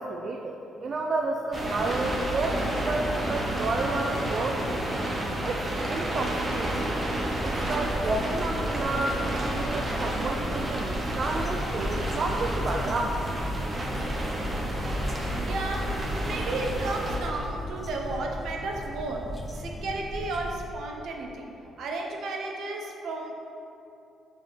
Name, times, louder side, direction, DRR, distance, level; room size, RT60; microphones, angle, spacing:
voice 1, 0.0-4.6 5.4-6.9 7.4-13.2, right 3 dB, 50° right, 2 dB, 0.4 m, -31 dB
sound 1, 1.5-17.2, right 1 dB, 35° right, 0.9 m, -30 dB
sound 2, 6.4-20.7, equal, 10° left, 0.5 m, -37 dB
voice 2, 15.0-23.3, right 2 dB, 75° right, 1 dB, 0.8 m, -34 dB
5.0 x 3.8 x 5.0 m, 2.8 s
cardioid pair, 90°, 0 cm